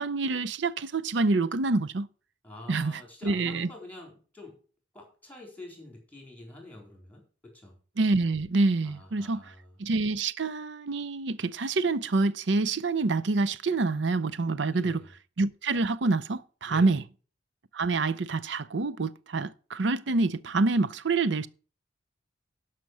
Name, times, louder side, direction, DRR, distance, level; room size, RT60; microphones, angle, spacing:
voice 1, 0.0-2.1 2.7-3.7 8.0-9.5 9.8-15.0 15.4-17.0 17.7-21.5, right 3 dB, 65° right, 0.6 m, -27 dB
voice 2, 2.4-4.6 4.9-7.8 8.8-9.8 14.7-15.1 16.7-17.0, left 1 dB, 10° left, 4.0 m, -47 dB
11.5 x 5.8 x 6.2 m
head